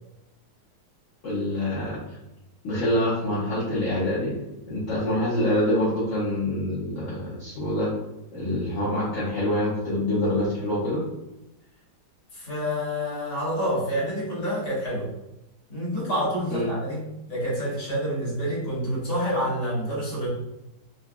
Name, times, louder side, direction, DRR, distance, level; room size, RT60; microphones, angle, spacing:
voice 1, 1.2-2.0 2.6-4.3 4.7-7.9 8.3-11.0 16.5-16.7, left 1 dB, 55° left, -8 dB, 1.0 m, -26 dB
voice 2, 12.3-15.1 15.7-20.3, equal, 25° left, -8 dB, 1.2 m, -28 dB
3.9 x 2.5 x 2.3 m, 0.94 s
omnidirectional pair, 1.9 m